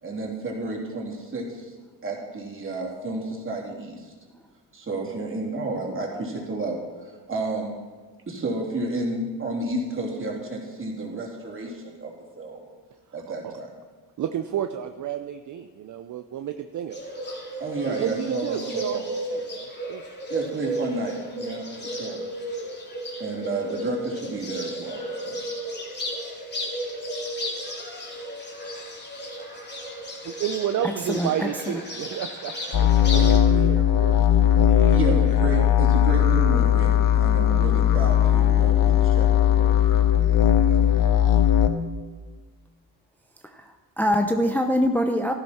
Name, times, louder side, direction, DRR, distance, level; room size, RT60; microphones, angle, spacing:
voice 1, 0.0-1.7 2.0-4.1 4.7-7.7 8.3-12.7 13.1-13.8 17.6-19.0 20.3-22.2 23.2-25.4 34.9-39.3 39.5-39.7, right 2 dB, 35° right, -1 dB, 3.1 m, -31 dB
voice 2, 14.2-17.0 17.8-20.0 30.2-34.2 34.6-35.7, right 10 dB, 55° right, 8 dB, 0.7 m, -32 dB
Bird, 16.9-33.4, equal, 30° left, 3.0 m, -34 dB
voice 3, 30.8-31.8 43.4-45.3, equal, 5° left, 4 dB, 0.7 m, -24 dB
sound 1, 32.7-41.7, left 10 dB, 60° left, 1.0 m, -18 dB
13.0 x 12.0 x 4.3 m, 1.4 s
cardioid pair, 85°, 36 cm